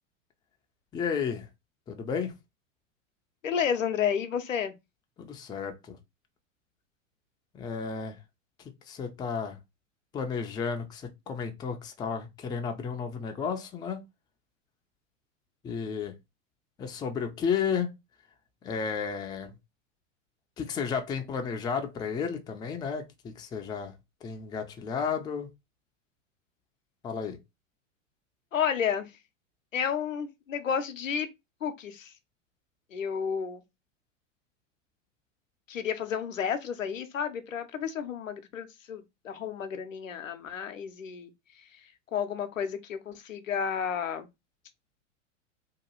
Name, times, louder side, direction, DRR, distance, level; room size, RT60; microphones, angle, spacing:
voice 1, 0.9-1.5 1.9-2.3 5.2-6.0 7.5-8.2 8.9-9.6 10.1-14.0 15.6-16.2 16.8-17.9 18.6-19.5 20.6-23.9 24.2-25.5 27.0-27.4, left 6 dB, 10° left, 0.3 m, -32 dB
voice 2, 3.4-4.7 28.5-29.1 29.7-31.3 31.6-32.1 32.9-33.6 35.7-41.3 42.1-44.3, left 7 dB, 90° left, 0.6 m, -31 dB
2.8 x 2.3 x 2.9 m
hypercardioid pair, 95°, 38 cm